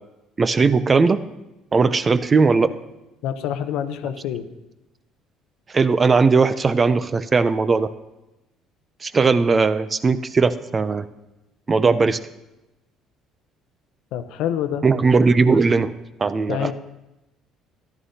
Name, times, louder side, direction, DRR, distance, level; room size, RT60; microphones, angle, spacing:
voice 1, 0.4-1.2 1.7-2.7 5.7-7.9 9.0-11.0 11.7-12.2 14.8-15.9 16.2-16.7, right 4 dB, 25° right, 13 dB, 0.4 m, -18 dB
voice 2, 3.2-4.5 14.1-14.8 16.5-16.7, left 10 dB, 80° left, 10 dB, 0.7 m, -26 dB
14.5 x 11.0 x 2.8 m, 0.97 s
cardioid pair, 125°, 0 cm